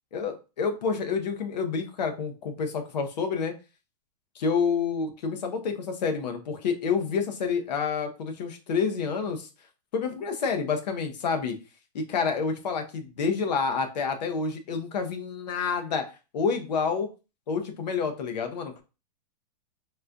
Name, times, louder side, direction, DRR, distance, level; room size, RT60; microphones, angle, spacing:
voice 1, 0.1-3.5 4.3-9.5 9.9-11.6 11.9-16.1 16.3-17.1 17.5-18.7, left 5 dB, 85° left, 6 dB, 0.8 m, -28 dB
4.2 x 2.2 x 2.5 m, 0.31 s
supercardioid pair, 175°, 21 cm